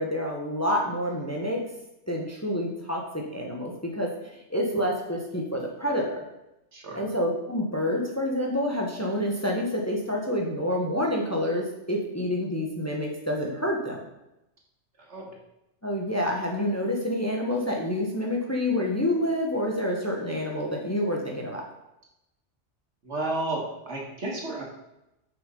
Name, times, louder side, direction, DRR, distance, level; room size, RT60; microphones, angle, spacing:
voice 1, 0.0-1.6 2.1-4.1 4.5-6.2 6.9-14.0 15.8-21.6, left 1 dB, 15° left, 0 dB, 1.3 m, -28 dB
voice 2, 6.7-7.0 15.1-15.3 23.0-24.6, right 2 dB, 70° right, -1 dB, 2.1 m, -32 dB
7.2 x 6.2 x 5.4 m, 0.88 s
omnidirectional pair, 1.2 m